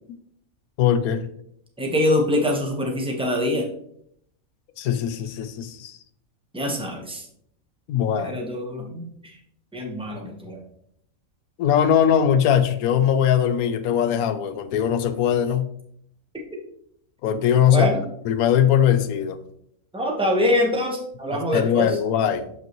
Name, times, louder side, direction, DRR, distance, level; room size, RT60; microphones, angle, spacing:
voice 1, 0.8-1.3 4.8-6.0 7.9-8.4 11.6-15.7 17.2-17.9 18.3-19.4 21.3-22.5, left 9 dB, 80° left, 11 dB, 1.1 m, -20 dB
voice 2, 1.8-3.6 6.5-7.2 8.2-9.0 9.7-10.6 17.7-18.0 19.9-21.9, left 1 dB, 5° right, 1 dB, 0.9 m, -24 dB
7.1 x 5.6 x 3.0 m, 0.71 s
omnidirectional pair, 1.5 m